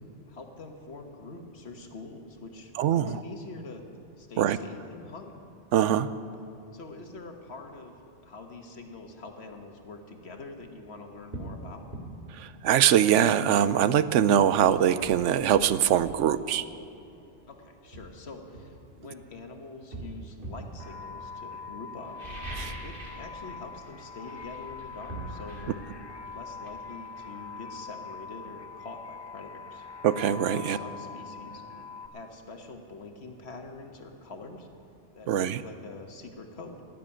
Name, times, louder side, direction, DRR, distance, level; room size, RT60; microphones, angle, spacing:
voice 1, 0.3-3.8 4.2-5.3 6.7-7.9 8.2-11.8 17.5-22.2 22.8-25.8 26.3-29.9 30.5-31.6 32.1-34.7 35.1-36.9, left 3 dB, 65° left, 4 dB, 1.6 m, -45 dB
voice 2, 2.8-3.2 4.4-4.6 5.7-6.1 12.3-16.7 22.6-22.7 30.0-30.8 35.3-35.6, right 10 dB, 80° right, 14 dB, 0.9 m, -23 dB
sound 1, 10.6-10.7 11.3-11.6 11.9-12.1 14.0-14.1 14.5-16.2 17.3-17.4 17.9-19.3 19.9-20.7 22.0-23.3 23.6-23.9 24.2-27.8 28.1-28.2, right 2 dB, 45° right, 2.6 m, -42 dB
sound 2, 20.8-32.1, left 5 dB, 25° left, 0.6 m, -43 dB
16.5 x 7.5 x 10.0 m, 2.8 s
omnidirectional pair, 1.2 m